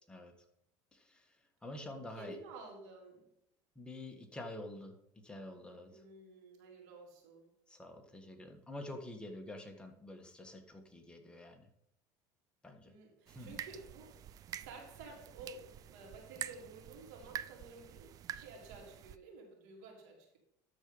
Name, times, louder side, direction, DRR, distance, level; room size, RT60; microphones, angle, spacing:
voice 1, 0.9-2.4 3.8-5.0 5.2-6.0 7.7-11.7 12.6-12.9 13.3-13.6, left 1 dB, 10° left, 3 dB, 1.6 m, -48 dB
voice 2, 2.1-3.3 5.9-7.5 12.9-20.4, right 3 dB, 80° right, 0 dB, 3.8 m, -52 dB
sound 1, 13.3-19.2, right 10 dB, 40° right, 0.5 m, -47 dB
13.0 x 4.6 x 5.5 m, 0.78 s
supercardioid pair, 115°, 9 cm